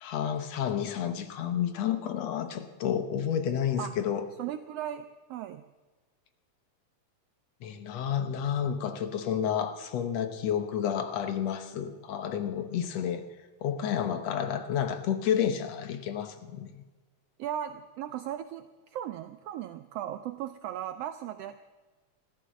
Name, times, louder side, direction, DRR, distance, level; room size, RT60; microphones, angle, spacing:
voice 1, 0.0-4.2 7.6-13.2 13.6-16.8, left 9 dB, 70° left, 9 dB, 2.1 m, -30 dB
voice 2, 4.4-5.6 17.4-21.6, right 11 dB, 75° right, 10 dB, 1.5 m, -37 dB
15.0 x 13.0 x 7.4 m, 1.3 s
omnidirectional pair, 3.3 m